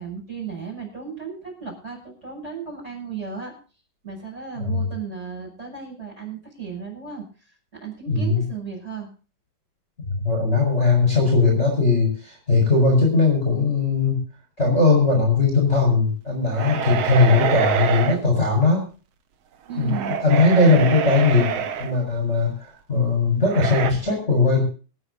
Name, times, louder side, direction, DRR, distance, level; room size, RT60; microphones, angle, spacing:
voice 1, 0.0-3.5 4.0-9.1 19.7-20.2, right 6 dB, 15° right, 0 dB, 6.9 m, -35 dB
voice 2, 4.5-4.9 8.1-8.5 10.1-14.2 14.6-18.9 19.7-21.5 21.8-24.6, left 3 dB, 15° left, -1 dB, 4.8 m, -19 dB
sound 1, 16.5-18.2 19.7-21.9 23.5-23.9, right 8 dB, 75° right, 1.4 m, -25 dB
27.0 x 9.4 x 2.7 m, 0.36 s
omnidirectional pair, 4.5 m